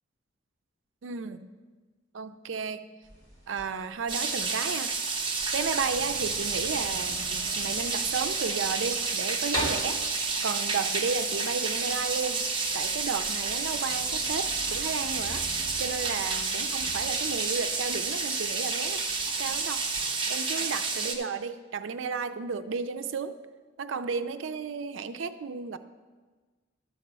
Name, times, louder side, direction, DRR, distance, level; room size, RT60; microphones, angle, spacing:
voice 1, 1.0-1.5 2.1-2.8 3.5-4.9 5.5-10.0 10.4-12.5 12.7-15.4 15.8-19.0 19.4-19.8 20.3-23.4 23.8-25.8, right 5 dB, 75° right, 10 dB, 0.4 m, -33 dB
sound 1, 3.0-20.0, equal, 20° left, 2.9 m, -44 dB
sound 2, 4.1-21.1, right 4 dB, 25° right, 0.8 m, -30 dB
12.0 x 4.2 x 6.8 m, 1.4 s
head